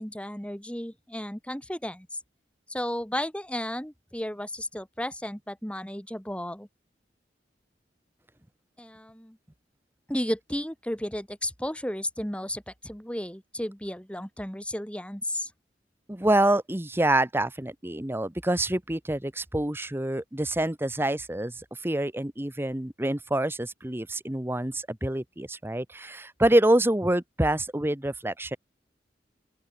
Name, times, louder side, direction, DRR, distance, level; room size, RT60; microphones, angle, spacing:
voice 1, 0.0-2.1 2.7-6.7 8.8-9.4 10.1-15.5, left 1 dB, 5° left, 4.2 m, -33 dB
voice 2, 16.1-21.5 21.8-28.6, right 1 dB, 15° right, 1.0 m, -26 dB
open air
head